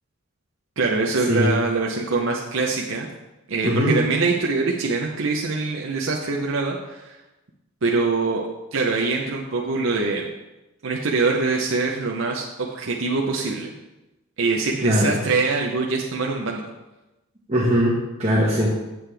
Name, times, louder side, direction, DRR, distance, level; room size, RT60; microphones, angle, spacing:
voice 1, 0.8-3.1 3.5-7.2 7.8-8.4 8.7-10.3 10.8-12.4 12.7-13.7 14.4-16.6, right 3 dB, 65° right, 0 dB, 0.7 m, -23 dB
voice 2, 3.6-4.0 14.8-15.1 17.5-18.7, equal, 30° right, -6 dB, 1.3 m, -20 dB
7.8 x 7.5 x 3.4 m, 1.0 s
head